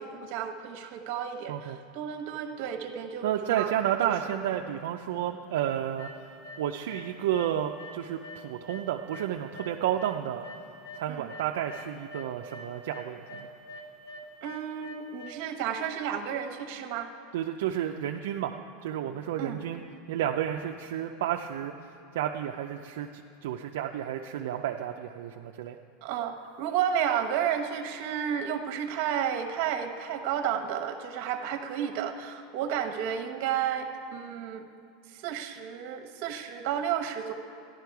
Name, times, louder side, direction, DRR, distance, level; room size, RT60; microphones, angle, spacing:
voice 1, 0.0-3.7 11.1-11.3 14.4-17.1 19.4-19.6 26.0-34.6 35.1-37.3, right 9 dB, 60° right, 5 dB, 1.0 m, -32 dB
voice 2, 3.2-6.1 6.6-10.4 10.9-13.5 17.3-19.8 20.1-21.7 22.1-25.8, right 10 dB, 80° right, 3 dB, 0.4 m, -31 dB
sound 1, 6.0-6.6 6.9-7.5 7.8-11.0 11.3-15.3, left 1 dB, 50° left, 2.8 m, -44 dB
13.5 x 10.5 x 4.7 m, 2.6 s
supercardioid pair, 140°, 0 cm